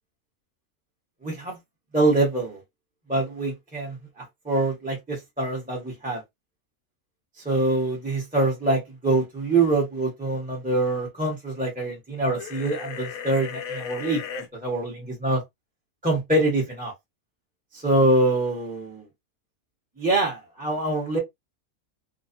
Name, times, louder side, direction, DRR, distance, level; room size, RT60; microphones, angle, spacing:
voice 1, 1.2-1.6 1.9-2.6 3.1-6.2 7.4-14.2 14.5-15.4 16.0-16.9 17.7-19.1 20.0-21.2, right 2 dB, 5° right, 0.8 m, -24 dB
sound 1, 12.4-14.5, left 7 dB, 85° left, 1.0 m, -35 dB
2.4 x 2.1 x 2.5 m
omnidirectional pair, 1.5 m